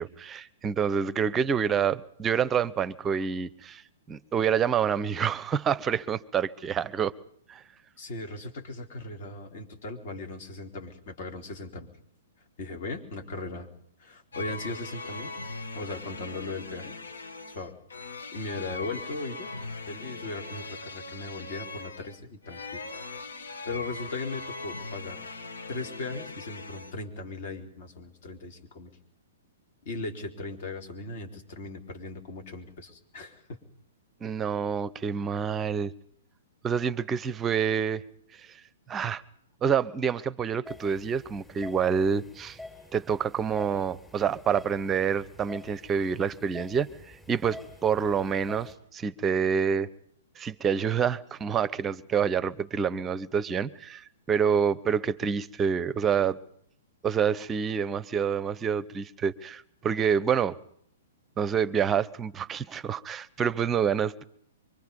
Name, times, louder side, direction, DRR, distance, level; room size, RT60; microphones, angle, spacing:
voice 1, 0.0-3.8 4.1-7.1 7.5-7.6 34.2-35.9 36.6-38.0 38.5-38.6 38.9-39.2 39.6-42.6 42.9-49.9 50.4-56.4 57.0-60.6 61.4-64.2, right 7 dB, 20° right, 0.8 m, -27 dB
voice 2, 8.0-11.9 12.6-13.7 14.0-15.3 15.7-17.0 17.5-17.8 18.3-19.5 19.9-22.8 23.7-25.2 25.7-28.9 29.8-33.6, left 3 dB, 50° left, 3.8 m, -38 dB
sound 1, 14.3-26.9, left 3 dB, 70° left, 1.7 m, -40 dB
sound 2, 40.6-48.7, left 2 dB, 5° left, 5.2 m, -47 dB
24.0 x 24.0 x 5.5 m
figure-of-eight pair, 110°, 0 cm